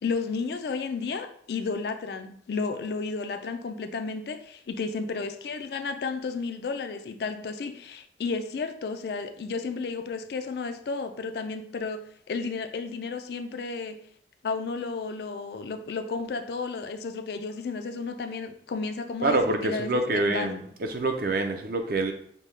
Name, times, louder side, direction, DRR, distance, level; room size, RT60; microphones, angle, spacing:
voice 1, 0.0-14.0 14.4-20.6, left 4 dB, 60° left, 0.4 m, -32 dB
voice 2, 19.2-22.1, right 2 dB, 55° right, 0.5 m, -26 dB
5.2 x 2.2 x 3.2 m
head